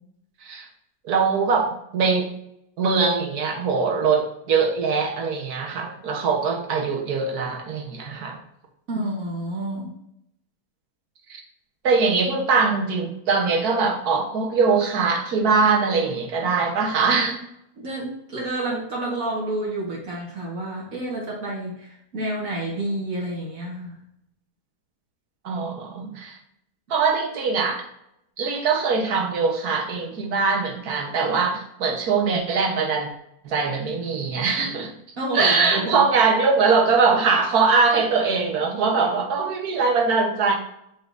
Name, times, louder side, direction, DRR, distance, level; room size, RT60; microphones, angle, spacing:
voice 1, 1.0-2.3 2.8-8.4 11.3-11.4 11.8-17.4 25.4-26.4 26.9-27.9 28.4-33.1 33.4-34.9 35.3-40.6, right 4 dB, 90° right, 2 dB, 1.6 m, -22 dB
voice 2, 8.9-10.0 17.8-24.0 35.2-36.1, right 1 dB, 65° right, -3 dB, 1.9 m, -29 dB
7.3 x 5.6 x 2.6 m, 0.78 s
omnidirectional pair, 1.6 m